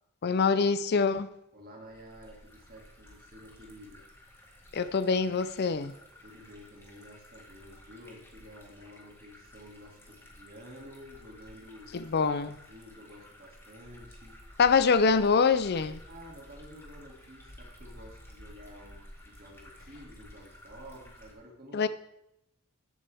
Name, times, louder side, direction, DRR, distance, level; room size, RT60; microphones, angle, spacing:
voice 1, 0.2-1.3 4.7-5.9 11.9-12.5 14.6-16.0 21.7-21.9, left 5 dB, 50° left, 0.5 m, -25 dB
voice 2, 1.5-4.1 6.2-14.6 16.1-21.9, equal, 45° right, 2.4 m, -51 dB
sound 1, 1.8-21.3, left 1 dB, 10° left, 1.7 m, -53 dB
13.5 x 8.6 x 3.5 m
head